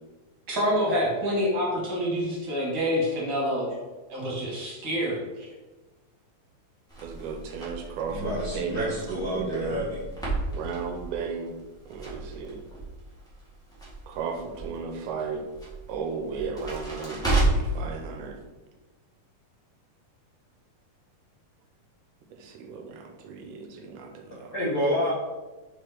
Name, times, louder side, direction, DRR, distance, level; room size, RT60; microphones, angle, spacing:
voice 1, 0.5-3.7 4.1-5.5, equal, 45° right, -5 dB, 2.2 m, -27 dB
Crackle, 6.9-17.8, right 2 dB, 5° left, 0.8 m, -32 dB
voice 2, 7.0-9.9 10.5-11.5 11.9-12.7 14.1-15.4 15.9-18.4 22.3-24.5, right 5 dB, 80° right, 3 dB, 2.1 m, -35 dB
voice 3, 8.1-10.0 24.5-25.1, equal, 50° left, -9 dB, 1.1 m, -28 dB
5.0 x 4.9 x 4.4 m, 1.2 s
omnidirectional pair, 3.7 m